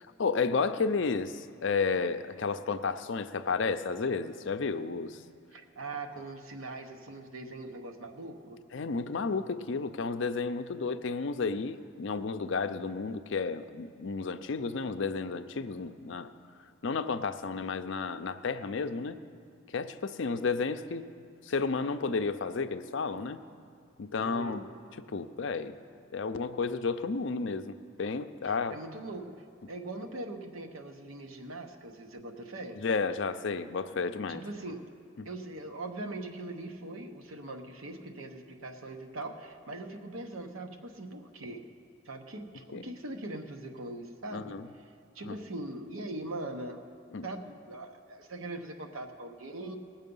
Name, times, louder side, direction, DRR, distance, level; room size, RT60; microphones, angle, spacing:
voice 1, 0.2-5.2 8.7-16.3 16.8-19.2 19.7-21.1 21.4-23.4 24.0-24.7 25.1-25.8 26.1-28.8 32.8-34.4 35.2-35.3 42.7-42.9 44.3-44.7 45.3-45.4 47.1-47.3, left 4 dB, 65° left, 10 dB, 0.5 m, -32 dB
voice 2, 5.5-8.6 24.2-24.7 28.4-29.3 29.7-32.8 34.3-34.9 35.2-41.7 42.0-44.9 45.1-46.8 47.2-49.8, right 2 dB, 80° right, 5 dB, 1.0 m, -41 dB
19.0 x 7.4 x 5.4 m, 2.2 s
head